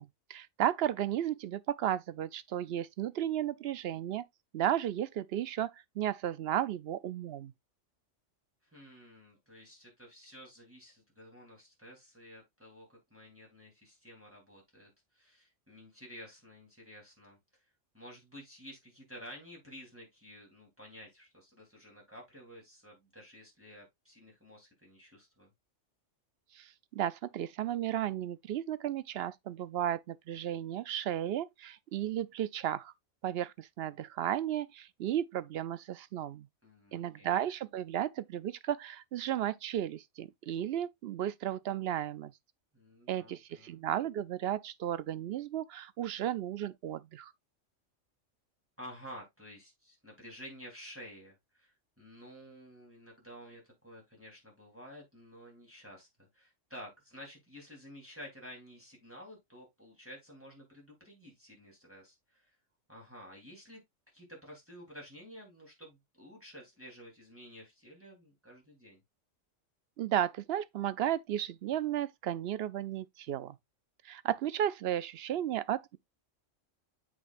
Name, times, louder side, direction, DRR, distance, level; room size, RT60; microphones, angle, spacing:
voice 1, 0.0-4.2 4.5-7.5 26.5-32.9 33.2-36.5 36.9-42.3 43.1-47.3 70.0-73.6 74.0-76.0, right 11 dB, 65° right, 0.7 m, -34 dB
voice 2, 8.7-17.4 17.9-25.5 36.6-37.3 42.7-43.9 48.8-62.5 62.9-63.8 64.1-69.0, equal, 10° right, 3.3 m, -52 dB
7.9 x 6.4 x 2.5 m
omnidirectional pair, 1.3 m